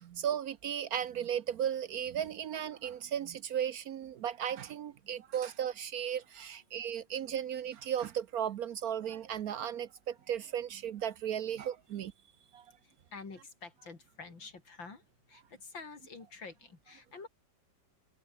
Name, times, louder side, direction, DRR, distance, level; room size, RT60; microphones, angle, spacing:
voice 1, 0.0-12.1 12.5-12.6, right 9 dB, 65° right, 1.0 m, -35 dB
voice 2, 12.8-15.0 15.3-17.3, left 4 dB, 90° left, 4.6 m, -48 dB
omnidirectional pair, 2.0 m